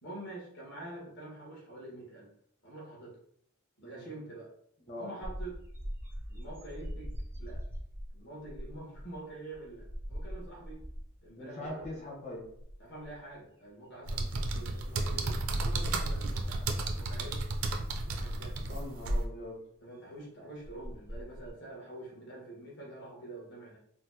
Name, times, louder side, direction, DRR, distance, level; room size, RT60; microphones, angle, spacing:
voice 1, 0.0-2.3 2.6-3.2 3.8-4.5 4.9-5.5 6.3-7.6 8.1-10.8 11.2-12.0 12.8-17.4 18.1-18.7 19.8-23.8, right 2 dB, 50° left, -4 dB, 1.3 m, -46 dB
voice 2, 4.8-5.2 11.4-12.5 18.7-19.7, left 1 dB, 30° left, -3 dB, 1.0 m, -42 dB
sound 1, 5.2-11.3 11.6-12.0 12.3-13.3 14.0-16.2 16.6-16.9 17.9-18.0 20.2-20.3 20.6-21.5, equal, 10° right, 0.3 m, -43 dB
sound 2, 14.0-19.2, right 2 dB, 75° right, 0.5 m, -32 dB
4.2 x 2.1 x 2.8 m, 0.68 s
head